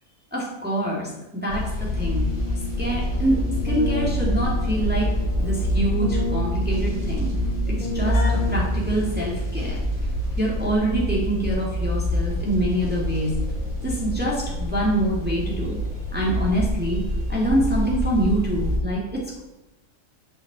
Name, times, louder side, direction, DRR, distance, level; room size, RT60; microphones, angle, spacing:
voice 1, 0.3-2.3 2.8-5.1 5.4-7.3 7.7-8.2 8.5-9.8 10.4-13.3 13.8-15.8 16.1-17.0 17.3-19.4, right 1 dB, 5° right, -5 dB, 2.4 m, -25 dB
sound 1, 1.5-18.8, equal, 35° right, 3.9 m, -26 dB
Keyboard (musical), 1.9-9.4, left 2 dB, 85° left, 2.7 m, -33 dB
7.6 x 6.5 x 7.5 m, 0.96 s
omnidirectional pair, 1.4 m